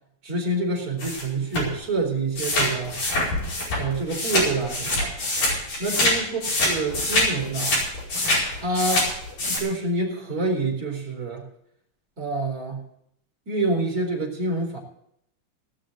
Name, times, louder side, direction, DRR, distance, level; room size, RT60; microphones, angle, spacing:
voice 1, 0.2-3.0 3.8-5.1 5.8-7.8 8.5-9.1 9.5-11.4 12.2-12.8 13.5-14.8, right 2 dB, 25° right, -2 dB, 4.4 m, -27 dB
sound 1, 1.0-1.2 1.5-1.7 2.4-6.1 6.4-9.6, left 1 dB, 55° left, 6.4 m, -24 dB
18.5 x 6.4 x 8.4 m, 0.74 s
omnidirectional pair, 3.9 m